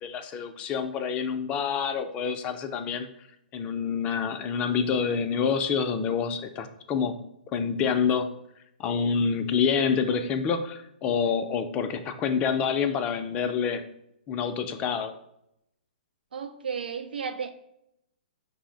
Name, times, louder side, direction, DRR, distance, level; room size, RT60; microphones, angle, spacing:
voice 1, 0.0-3.1 3.5-7.2 7.5-8.3 8.8-13.8 14.3-15.1, left 6 dB, 25° left, 7 dB, 0.4 m, -27 dB
voice 2, 16.3-17.5, right 6 dB, 80° right, 6 dB, 0.5 m, -33 dB
5.5 x 2.1 x 3.8 m, 0.79 s
hypercardioid pair, 135°, 5 cm